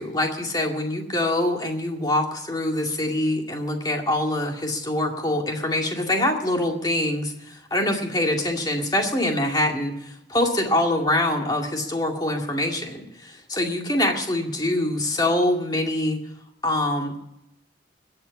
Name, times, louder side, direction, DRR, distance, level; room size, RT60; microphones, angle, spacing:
voice 1, 0.0-16.2 16.6-17.2, left 1 dB, 20° left, 2 dB, 2.2 m, -24 dB
21.5 x 8.1 x 7.1 m, 0.82 s
head